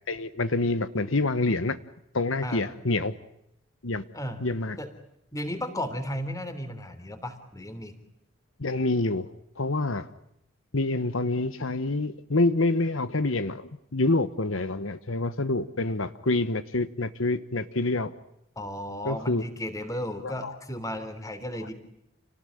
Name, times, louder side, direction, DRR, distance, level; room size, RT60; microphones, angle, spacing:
voice 1, 0.1-1.8 2.1-3.1 3.8-4.0 4.4-4.8 8.6-9.3 9.6-10.1 10.7-18.1 19.0-19.4 20.2-20.5, left 2 dB, 65° left, 13 dB, 1.2 m, -27 dB
voice 2, 5.3-7.9 18.5-21.7, equal, 15° left, 10 dB, 3.4 m, -34 dB
30.0 x 19.0 x 9.9 m, 0.80 s
head